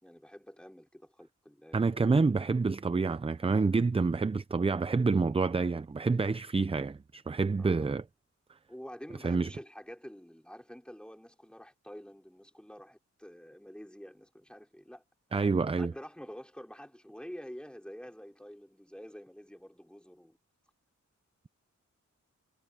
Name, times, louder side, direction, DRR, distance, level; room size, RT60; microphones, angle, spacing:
voice 1, 0.0-1.8 7.6-7.9 8.7-15.0 15.8-20.4, equal, 5° left, 4.2 m, -48 dB
voice 2, 1.7-8.0 9.2-9.5 15.3-15.9, right 4 dB, 20° right, 0.5 m, -28 dB
wide cardioid pair, 110°, 30 cm